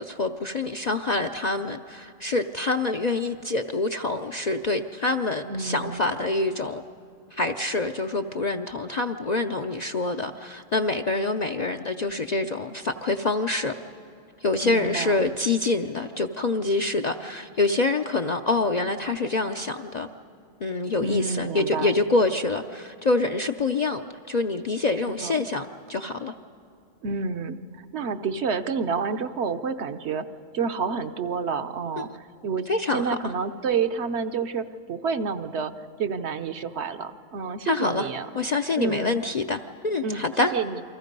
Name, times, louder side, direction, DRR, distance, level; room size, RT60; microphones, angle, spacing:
voice 1, 0.0-6.8 7.3-13.7 14.4-20.1 20.6-24.0 24.3-26.3 32.0-32.1 32.7-33.2 37.6-40.5, left 3 dB, 50° left, 6 dB, 0.5 m, -26 dB
voice 2, 5.4-6.1 14.6-15.2 21.0-22.0 25.2-25.4 27.0-30.3 30.5-38.3 38.8-39.2 40.0-40.2 40.5-40.8, right 5 dB, 65° right, 9 dB, 1.0 m, -29 dB
29.0 x 23.5 x 5.3 m, 2.6 s
omnidirectional pair, 1.3 m